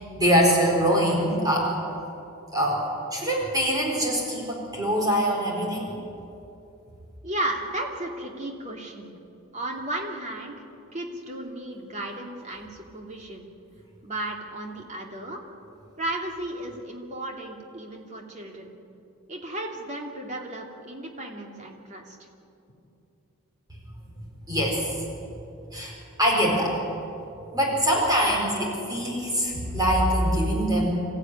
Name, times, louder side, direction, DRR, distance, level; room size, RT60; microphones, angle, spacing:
voice 1, 0.2-1.7 2.5-2.9 3.1-5.9 24.5-25.0 25.7-26.8 27.5-30.9, equal, 15° right, -2 dB, 4.4 m, -23 dB
voice 2, 7.2-9.1 9.5-10.5 10.9-13.5 14.0-15.4 16.0-18.7 19.3-22.2, right 1 dB, 35° right, 1 dB, 2.9 m, -34 dB
27.5 x 15.0 x 9.7 m, 2.8 s
head